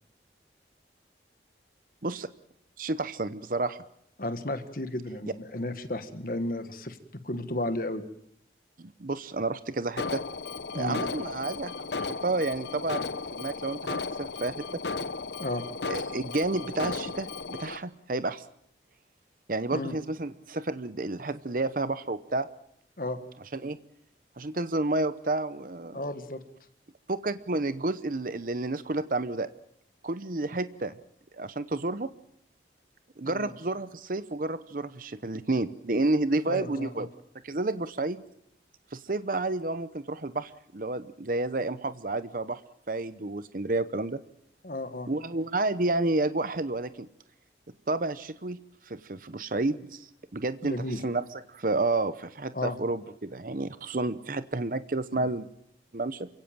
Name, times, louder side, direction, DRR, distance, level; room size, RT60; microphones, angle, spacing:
voice 1, 2.8-3.8 8.8-10.2 10.7-14.6 15.9-18.4 19.5-22.5 23.5-23.8 24.4-26.0 27.1-29.5 30.0-30.9 31.3-32.1 33.2-37.1 37.4-38.2 38.9-42.6 42.9-44.2 45.1-47.1 47.9-48.6 48.9-55.5 55.9-56.3, right 2 dB, 50° right, 13 dB, 0.8 m, -30 dB
voice 2, 4.2-7.0 7.2-8.0 10.7-11.0 15.4-15.6 19.7-19.9 23.0-23.2 25.9-26.4 33.2-33.5 36.5-37.0 44.6-45.1 50.6-51.0 52.5-52.8 55.1-55.2, left 1 dB, 50° left, 9 dB, 1.7 m, -33 dB
Alarm, 10.0-17.8, left 4 dB, 75° left, 0.9 m, -35 dB
28.0 x 17.0 x 7.5 m, 0.73 s
head